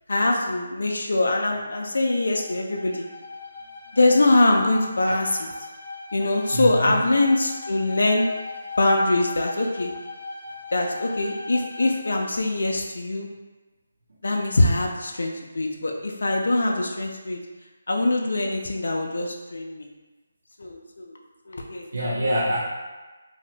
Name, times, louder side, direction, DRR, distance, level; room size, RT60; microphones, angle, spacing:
voice 1, 0.1-3.0 3.9-5.3 6.1-8.3 8.8-9.9 10.7-13.3 14.2-17.4 17.9-19.9 20.6-21.1 21.5-21.9, left 2 dB, 80° left, 1 dB, 0.4 m, -23 dB
Bowed string instrument, 1.9-12.3, left 4 dB, 25° left, 0.9 m, -39 dB
voice 2, 6.5-7.0 21.9-22.6, equal, 80° right, -4 dB, 0.7 m, -25 dB
2.7 x 2.1 x 4.0 m, 1.2 s
hypercardioid pair, 170°, 0 cm